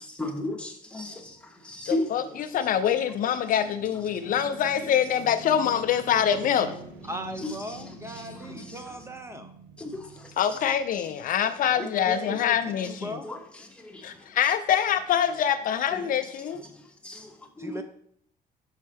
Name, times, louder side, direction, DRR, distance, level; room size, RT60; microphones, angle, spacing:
voice 1, 0.2-1.4 1.6-2.4 7.4-8.8 9.8-10.3 11.8-11.9 13.2-14.1 15.9-16.1 16.8-17.8, left 1 dB, 5° left, 0.9 m, -35 dB
voice 2, 1.9-6.8 10.4-13.2 14.0-16.6, left 9 dB, 55° left, 0.4 m, -25 dB
sound 1, 2.1-11.3, right 3 dB, 80° right, 0.8 m, -46 dB
voice 3, 7.1-9.5 11.7-12.6 12.8-13.4 17.6-17.8, equal, 15° right, 0.5 m, -38 dB
5.6 x 5.2 x 3.4 m
cardioid pair, 110°, 17 cm